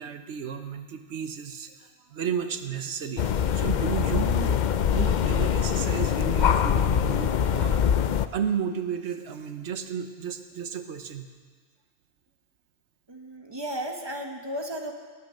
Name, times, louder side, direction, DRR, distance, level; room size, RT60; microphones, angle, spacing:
voice 1, 0.0-3.3 3.5-4.6 4.9-11.3, right 7 dB, 90° right, 8 dB, 1.2 m, -33 dB
sound 1, 3.2-8.3, left 8 dB, 55° left, 0.6 m, -23 dB
voice 2, 13.1-14.9, equal, 25° right, 2 dB, 1.5 m, -34 dB
20.0 x 9.8 x 6.5 m, 1.5 s
omnidirectional pair, 1.1 m